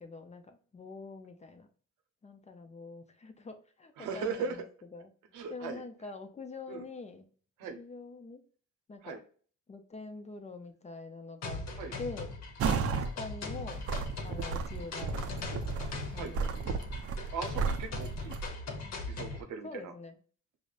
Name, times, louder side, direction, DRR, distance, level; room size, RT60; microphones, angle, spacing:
voice 1, 0.0-1.7 2.2-5.1 5.5-7.3 7.8-8.4 8.9-9.2 9.7-11.7 12.0-12.4 13.2-13.9 14.2-15.7 16.1-16.5 18.6-19.0 19.6-20.2, left 3 dB, 25° left, 7 dB, 0.4 m, -45 dB
voice 2, 4.0-4.6 5.3-5.8 6.7-6.8 7.6-7.8 9.0-9.2 11.8-11.9 12.6-12.8 16.1-16.7 17.3-18.4 19.1-19.9, right 5 dB, 85° right, 6 dB, 0.7 m, -38 dB
sound 1, 11.4-19.4, left 3 dB, 60° left, 0.8 m, -40 dB
sound 2, 12.6-13.1 13.6-18.5, right 5 dB, 50° right, 0.4 m, -33 dB
4.9 x 2.0 x 2.4 m, 0.44 s
cardioid pair, 90°, 30 cm